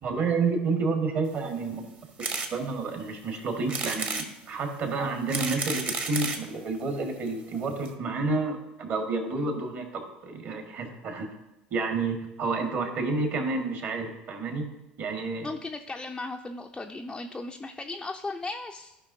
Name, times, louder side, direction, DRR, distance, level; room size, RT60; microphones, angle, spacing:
voice 1, 0.0-1.8 2.5-11.3 11.7-14.7 15.0-15.5, right 3 dB, 45° right, 3 dB, 1.8 m, -30 dB
sound 1, 2.2-2.5 3.0-3.1 3.7-4.3 5.0-6.5 7.3-7.4 7.5-7.6 7.8-7.9, right 3 dB, 30° right, 1.1 m, -31 dB
voice 2, 15.4-19.0, left 3 dB, 15° left, 2 dB, 0.5 m, -36 dB
14.0 x 5.3 x 2.7 m, 0.94 s
hypercardioid pair, 70°, 5 cm